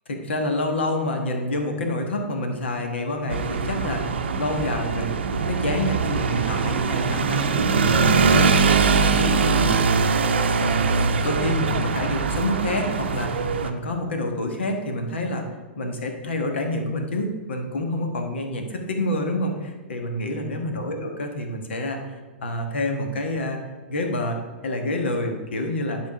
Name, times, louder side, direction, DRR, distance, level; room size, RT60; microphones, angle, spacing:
voice 1, 0.1-4.0 4.4-10.0 10.6-15.4 15.8-23.6 23.9-26.0, left 1 dB, 70° left, 4 dB, 1.3 m, -28 dB
sound 1, 3.3-13.7, right 5 dB, 65° right, 0.6 m, -22 dB
10.5 x 3.8 x 4.9 m, 1.4 s
figure-of-eight pair, 105°, 6 cm